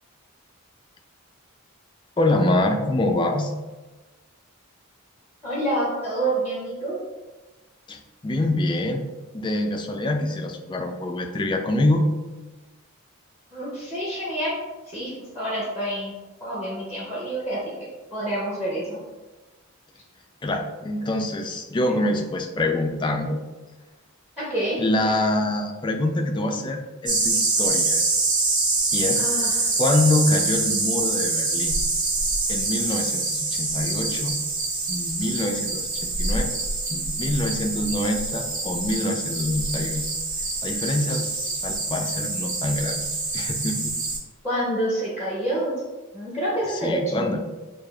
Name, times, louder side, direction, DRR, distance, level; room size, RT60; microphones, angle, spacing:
voice 1, 2.2-3.5 7.9-9.0 9.3-12.1 20.4-23.4 24.8-28.0 28.9-29.3 29.8-31.8 32.5-34.4 34.9-36.5 36.9-40.0 40.6-43.0 43.3-43.9 46.8-47.4, left 1 dB, 20° left, 3 dB, 0.3 m, -25 dB
voice 2, 5.4-7.0 13.5-14.6 14.9-16.2 16.4-17.6 18.1-19.0 24.4-24.8 29.2-29.7 44.4-45.7 46.1-47.4, right 1 dB, 10° right, -7 dB, 0.8 m, -27 dB
sound 1, 27.1-44.2, right 3 dB, 35° right, 0.6 m, -25 dB
6.4 x 2.4 x 2.3 m, 1.2 s
head